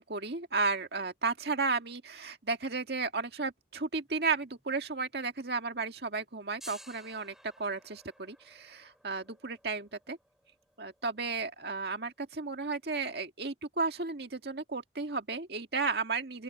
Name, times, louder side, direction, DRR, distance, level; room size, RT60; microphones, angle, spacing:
voice 1, 0.0-7.3 7.6-10.2 10.8-16.4, right 4 dB, 65° right, 1.9 m, -33 dB
sound 1, 4.0-4.8 5.1-5.2 6.1-12.7, right 1 dB, ahead, 7.6 m, -56 dB
open air
head